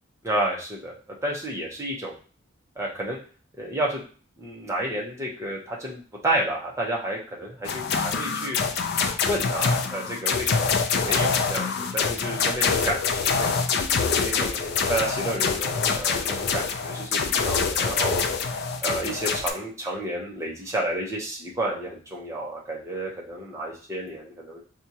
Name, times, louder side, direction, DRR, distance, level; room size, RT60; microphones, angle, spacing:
voice 1, 0.2-0.9 1.2-2.2 2.8-3.2 3.6-4.0 4.4-8.6 9.3-10.7 11.0-13.6 14.2-18.2 18.8-24.6, right 1 dB, 15° right, -3 dB, 0.8 m, -30 dB
sound 1, 7.6-19.5, left 5 dB, 50° left, 0.4 m, -25 dB
4.3 x 2.4 x 2.8 m, 0.39 s
head